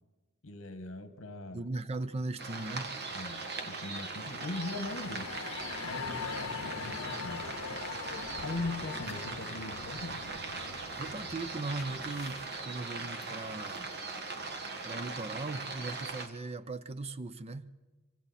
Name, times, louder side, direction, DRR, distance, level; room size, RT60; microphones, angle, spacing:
voice 1, 0.4-1.7 3.1-5.3 5.8-7.5 8.4-10.2, left 2 dB, 70° left, 10 dB, 1.4 m, -40 dB
voice 2, 1.5-3.0 11.0-13.9 14.8-17.7, right 2 dB, 30° right, 13 dB, 0.6 m, -38 dB
sound 1, 2.4-16.3, right 3 dB, 50° right, 1.7 m, -40 dB
sound 2, 3.9-12.7, left 6 dB, 85° left, 0.7 m, -42 dB
sound 3, 8.1-8.4 8.8-14.0, left 4 dB, 50° left, 4.4 m, -57 dB
25.5 x 25.0 x 4.2 m, 1.3 s
head